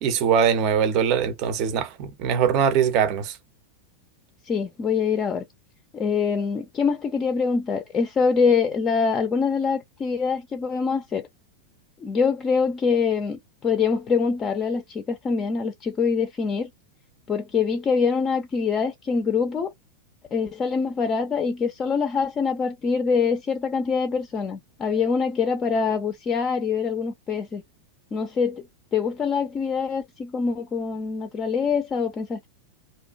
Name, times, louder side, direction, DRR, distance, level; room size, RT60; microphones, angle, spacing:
voice 1, 0.0-3.4, right 7 dB, 40° right, 0.6 m, -22 dB
voice 2, 4.4-5.4 5.9-11.3 12.0-16.7 17.3-19.7 20.3-27.6 28.1-28.7 28.9-32.5, left 5 dB, 25° left, 0.4 m, -24 dB
2.5 x 2.2 x 2.2 m
figure-of-eight pair, 90°, 0 cm